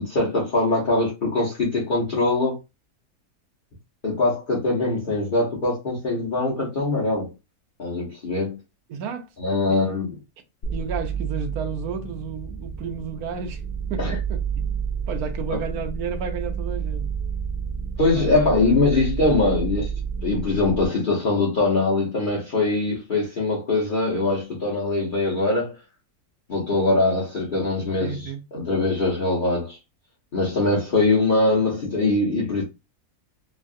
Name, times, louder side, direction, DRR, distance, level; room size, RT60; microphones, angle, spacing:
voice 1, 0.0-2.6 4.0-7.3 7.8-8.6 9.4-10.1 14.0-14.1 15.5-15.6 18.0-19.9 20.2-25.7 26.5-29.8 30.3-32.6, left 2 dB, 40° left, 0.8 m, -22 dB
voice 2, 8.9-9.8 10.7-13.6 13.9-14.8 15.1-17.1 18.0-18.3 28.0-28.4, right 6 dB, 70° right, 1.1 m, -32 dB
sound 1, 10.6-20.9, right 6 dB, 75° left, 0.4 m, -30 dB
3.1 x 2.3 x 2.6 m
omnidirectional pair, 1.7 m